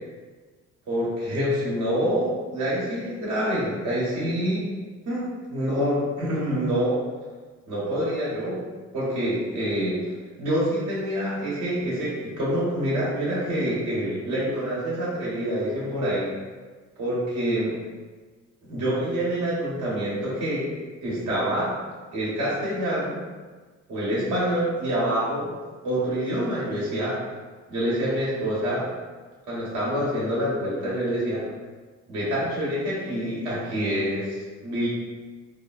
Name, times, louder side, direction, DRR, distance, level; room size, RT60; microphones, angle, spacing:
voice 1, 0.9-4.6 5.0-7.0 7.7-8.6 8.9-10.1 10.4-16.3 17.0-17.7 18.7-20.7 21.0-21.7 22.1-23.2 23.9-25.5 25.8-27.2 27.7-28.9 29.5-31.4 32.1-34.9, equal, 85° right, -8 dB, 1.3 m, -26 dB
3.6 x 2.1 x 2.4 m, 1.4 s
cardioid pair, 90°, 30 cm